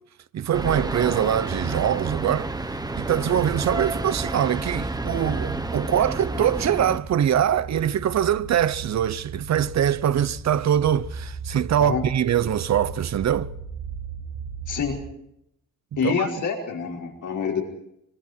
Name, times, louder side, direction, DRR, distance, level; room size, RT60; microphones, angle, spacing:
voice 1, 0.3-2.5 2.9-13.5 16.0-16.3, right 10 dB, 55° right, 0.8 m, -23 dB
sound 1, 0.5-7.0, right 2 dB, 10° right, 1.1 m, -30 dB
sound 2, 1.1-15.0, right 4 dB, 40° right, 4.6 m, -38 dB
voice 2, 14.7-15.0 16.0-17.6, left 6 dB, 70° left, 5.0 m, -26 dB
25.5 x 25.0 x 4.5 m
wide cardioid pair, 165°, 32 cm